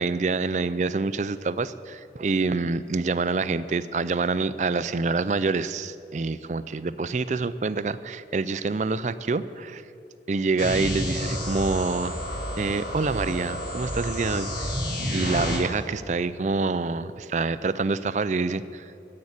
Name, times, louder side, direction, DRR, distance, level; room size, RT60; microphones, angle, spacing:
voice 1, 0.0-9.8 10.3-12.1 12.6-14.7 15.1-18.9, right 3 dB, 40° right, 14 dB, 0.4 m, -26 dB
sound 1, 10.6-15.6, left 1 dB, 55° left, 3.0 m, -30 dB
10.5 x 8.6 x 9.5 m, 2.7 s
head